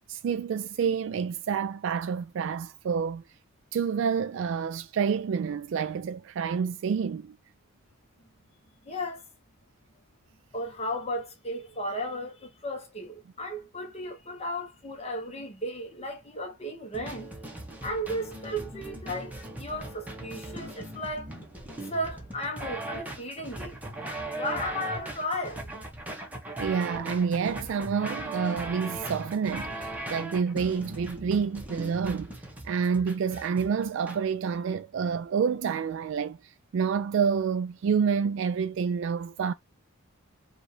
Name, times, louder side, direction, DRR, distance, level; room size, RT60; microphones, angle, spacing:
voice 1, 0.1-3.2 3.7-7.3 26.6-32.4 32.6-39.5, right 6 dB, 60° right, 0.3 m, -28 dB
voice 2, 8.8-9.2 10.5-17.3 17.8-21.3 21.9-23.8 24.3-25.7, equal, 30° left, 1.1 m, -35 dB
sound 1, 16.9-34.2, right 1 dB, 10° right, 0.9 m, -39 dB
5.1 x 2.5 x 3.2 m
head